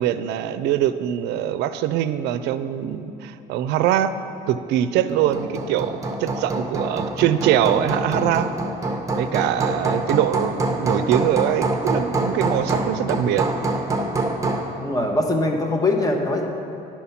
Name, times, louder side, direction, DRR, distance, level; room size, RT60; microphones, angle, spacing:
voice 1, 0.0-4.2 4.5-8.5 9.2-13.5, right 11 dB, 85° right, 12 dB, 0.4 m, -23 dB
Hammer, 5.1-14.8, right 2 dB, 20° right, 0.8 m, -25 dB
voice 2, 14.8-16.5, left 2 dB, 20° left, 2 dB, 0.9 m, -22 dB
10.5 x 4.4 x 5.7 m, 2.7 s
cardioid pair, 110°, 17 cm